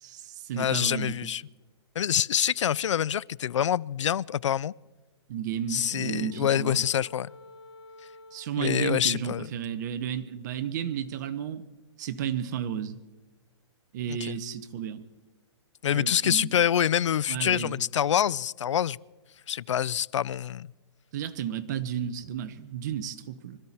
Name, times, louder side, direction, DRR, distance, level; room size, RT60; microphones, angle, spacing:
voice 1, 0.0-1.3 5.3-6.8 8.3-11.6 12.0-13.0 13.9-15.0 15.9-16.5 17.3-17.8 21.1-23.6, right 9 dB, 40° right, 1.0 m, -33 dB
voice 2, 0.6-1.4 2.0-4.7 5.7-7.3 8.6-9.5 14.1-14.4 15.8-19.0 19.5-20.7, left 9 dB, 85° left, 0.4 m, -26 dB
Wind instrument woodwind instrument, 5.8-10.2, left 2 dB, 60° left, 1.4 m, -52 dB
25.5 x 13.0 x 4.3 m
hypercardioid pair, 160°, 15 cm